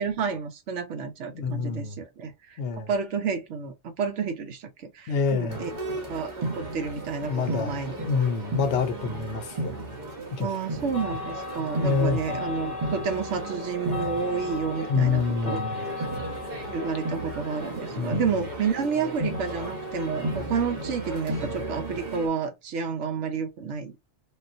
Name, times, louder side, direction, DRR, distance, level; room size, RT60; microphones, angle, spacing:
voice 1, 0.0-5.7 6.1-7.9 10.4-15.6 16.7-24.0, right 5 dB, 80° right, 1.0 m, -30 dB
voice 2, 1.3-2.0 2.6-2.9 5.1-5.7 7.2-9.8 10.4-10.5 11.7-12.2 14.9-15.9 18.0-18.5, left 5 dB, 70° left, 0.9 m, -27 dB
sound 1, 5.5-22.3, right 2 dB, 40° right, 1.1 m, -34 dB
sound 2, 10.9-21.6, left 4 dB, 40° left, 0.9 m, -39 dB
3.6 x 2.4 x 2.5 m
omnidirectional pair, 1.2 m